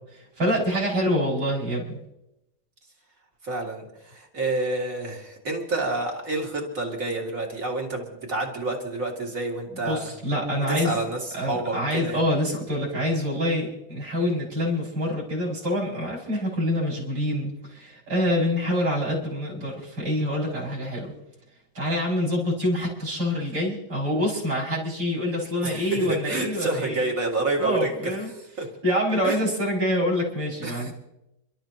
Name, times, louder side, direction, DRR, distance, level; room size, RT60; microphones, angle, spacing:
voice 1, 0.1-2.0 9.7-11.0 11.3-21.1 21.7-27.0 27.6-28.3 28.8-30.9, equal, 65° right, -3 dB, 6.6 m, -26 dB
voice 2, 3.4-10.1 10.5-12.2 25.6-27.9 28.6-28.7 29.2-29.4 30.6-30.9, right 2 dB, 40° right, 0 dB, 2.8 m, -29 dB
30.0 x 12.5 x 3.1 m, 0.87 s
omnidirectional pair, 2.2 m